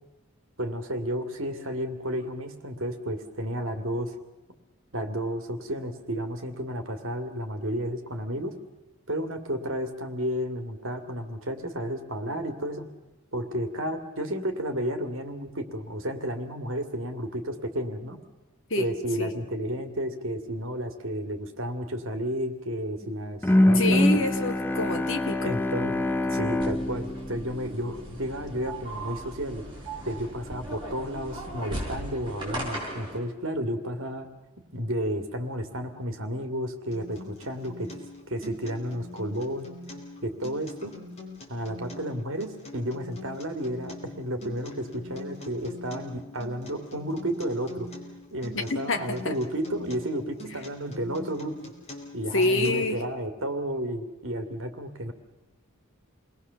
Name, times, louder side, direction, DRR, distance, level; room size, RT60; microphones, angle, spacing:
voice 1, 0.6-4.1 4.9-8.6 9.1-12.9 13.3-18.2 18.8-24.2 25.4-25.9 26.3-29.6 30.1-34.3 34.6-37.9 38.3-39.7 40.2-41.0 41.5-47.9 48.3-51.6 52.1-55.1, equal, 65° right, 7 dB, 2.4 m, -32 dB
Bowed string instrument, 23.4-28.5, left 1 dB, 10° left, 0.7 m, -25 dB
voice 2, 23.7-25.5 48.7-49.3 52.3-53.0, left 3 dB, 60° left, 5 dB, 2.1 m, -27 dB
sound 1, 26.6-33.2, right 1 dB, 20° right, 7.4 m, -38 dB
Acoustic guitar, 36.9-52.9, left 1 dB, 30° left, 4.8 m, -43 dB
28.5 x 20.5 x 7.0 m, 1.1 s
head